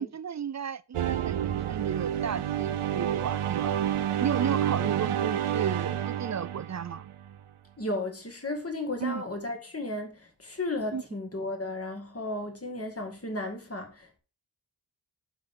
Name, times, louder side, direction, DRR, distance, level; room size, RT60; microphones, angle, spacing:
voice 1, 0.0-3.8 4.2-7.1 9.0-9.2 10.9-11.0, right 7 dB, 40° right, 0.4 m, -34 dB
sound 1, 0.9-7.4, right 10 dB, 85° right, 0.6 m, -29 dB
voice 2, 7.8-14.2, left 2 dB, 30° left, 2.1 m, -34 dB
11.5 x 4.0 x 3.7 m
cardioid pair, 40°, 49 cm